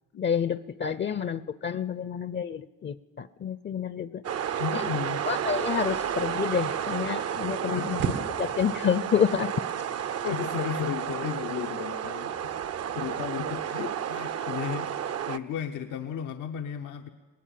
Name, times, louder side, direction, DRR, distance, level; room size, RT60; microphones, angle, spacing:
voice 1, 0.1-4.2 4.7-4.8 5.3-8.1 8.4-9.5, left 7 dB, 40° left, 17 dB, 0.6 m, -29 dB
sound 1, 4.2-15.4, right 9 dB, 55° right, 0.7 m, -32 dB
voice 2, 4.6-5.2 7.7-8.1 10.2-12.5 12.9-17.1, left 8 dB, 90° left, 5 dB, 0.9 m, -34 dB
sound 2, 7.2-13.3, right 6 dB, 90° right, 1.9 m, -41 dB
20.0 x 18.5 x 7.6 m, 1.3 s
cardioid pair, 90°, 30 cm